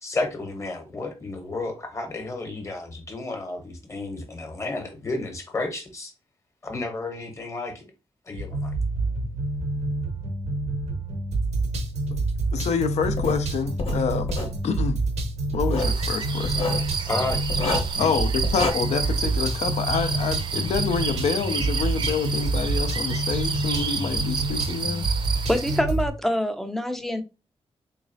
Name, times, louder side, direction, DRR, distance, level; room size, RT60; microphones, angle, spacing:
voice 1, 0.0-6.1 6.6-7.9 8.3-8.7 17.1-18.1, left 2 dB, 25° left, 0.9 m, -32 dB
sound 1, 8.4-26.1, right 2 dB, 80° right, 0.8 m, -27 dB
voice 2, 12.5-14.3 14.6-15.0 15.5-16.7 18.0-25.1, left 6 dB, 80° left, 0.4 m, -27 dB
Writing, 13.2-13.4 13.8-14.6 15.5-16.0 16.4-16.9 17.5-18.0 18.4-18.7, left 3 dB, 60° left, 0.8 m, -28 dB
sound 2, 15.8-25.8, right 5 dB, 45° right, 0.5 m, -31 dB
voice 3, 25.5-27.2, equal, 5° left, 0.4 m, -25 dB
3.9 x 3.1 x 2.6 m
wide cardioid pair, 175°, 11 cm